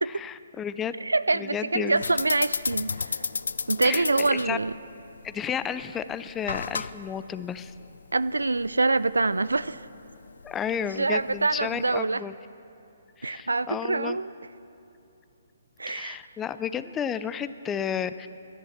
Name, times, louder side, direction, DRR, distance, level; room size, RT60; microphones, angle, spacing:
voice 1, 0.1-0.9 1.3-2.0 3.8-4.0 4.3-4.6 5.2-7.7 10.4-12.3 13.2-14.2 15.9-18.3, left 8 dB, 15° left, 13 dB, 0.4 m, -32 dB
voice 2, 1.0-3.2 3.7-4.7 8.1-9.8 11.0-12.2 13.2-14.3 15.8-16.2, right 3 dB, 85° right, 17 dB, 0.4 m, -25 dB
sound 1, 2.0-12.0, left 4 dB, 75° left, 0.4 m, -35 dB
13.0 x 11.0 x 7.3 m, 2.6 s
figure-of-eight pair, 135°, 0 cm